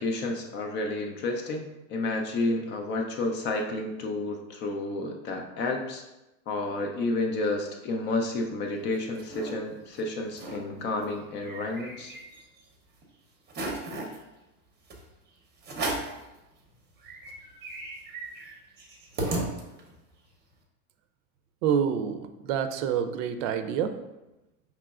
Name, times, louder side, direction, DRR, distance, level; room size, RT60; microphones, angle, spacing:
voice 1, 0.0-6.0 6.5-12.1, left 2 dB, 30° left, 3 dB, 0.3 m, -30 dB
sound 1, 8.7-9.5 10.0-10.1 10.3-10.6 11.0-12.6 13.0-13.1 13.5-14.2 14.9-15.0 15.6-16.2 16.7-16.8 17.0-20.0, right 2 dB, 25° right, 0.7 m, -35 dB
voice 2, 21.6-23.9, right 8 dB, 65° right, 9 dB, 0.5 m, -27 dB
4.9 x 3.0 x 2.3 m, 0.99 s
supercardioid pair, 120°, 42 cm